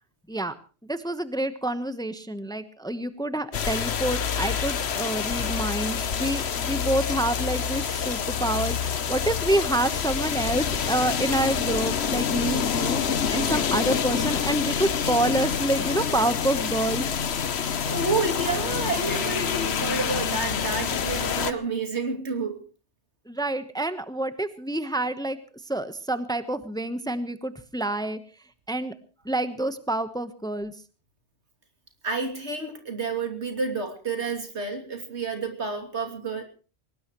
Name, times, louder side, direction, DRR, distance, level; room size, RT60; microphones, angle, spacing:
voice 1, 0.8-17.1 23.3-25.4 25.7-28.2 28.7-28.9 29.2-30.7, right 1 dB, 5° left, 11 dB, 1.1 m, -28 dB
sound 1, 3.5-21.5, left 7 dB, 70° left, 1.2 m, -27 dB
voice 2, 17.8-22.6 32.0-36.4, right 3 dB, 85° right, 4 dB, 3.3 m, -29 dB
22.5 x 19.0 x 3.1 m, 0.37 s
omnidirectional pair, 1.1 m